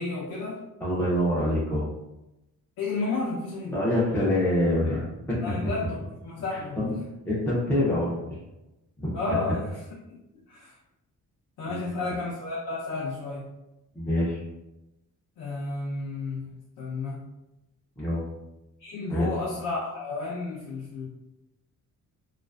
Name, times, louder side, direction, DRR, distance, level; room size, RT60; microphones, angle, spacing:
voice 1, 0.0-0.6 2.8-3.8 5.4-7.0 9.1-9.8 10.5-10.7 11.6-13.5 15.4-17.2 18.8-21.1, left 3 dB, 75° left, -5 dB, 0.6 m, -32 dB
voice 2, 0.8-1.9 3.7-5.4 6.5-6.9 7.3-8.4 9.0-9.4 11.7-11.9 14.0-14.4 18.0-18.2 19.1-19.3, left 1 dB, 5° left, -7 dB, 0.3 m, -26 dB
2.3 x 2.3 x 2.2 m, 0.95 s
wide cardioid pair, 170°, 32 cm